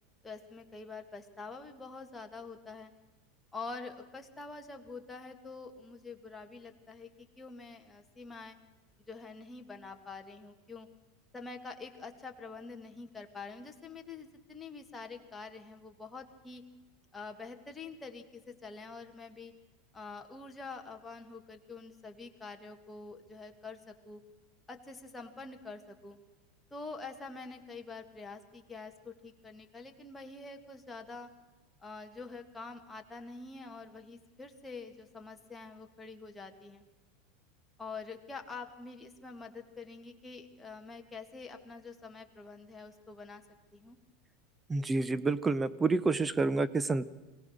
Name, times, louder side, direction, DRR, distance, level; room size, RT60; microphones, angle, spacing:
voice 1, 0.2-2.9 3.5-8.6 9.1-10.9 11.3-16.6 17.1-19.5 19.9-24.2 24.7-26.2 26.7-31.3 31.8-36.8 37.8-43.4 43.7-44.0, left 4 dB, 10° left, 3 dB, 1.8 m, -46 dB
voice 2, 44.7-47.0, right 3 dB, 15° right, 17 dB, 0.6 m, -28 dB
23.0 x 17.5 x 6.5 m, 1.1 s
supercardioid pair, 135°, 0 cm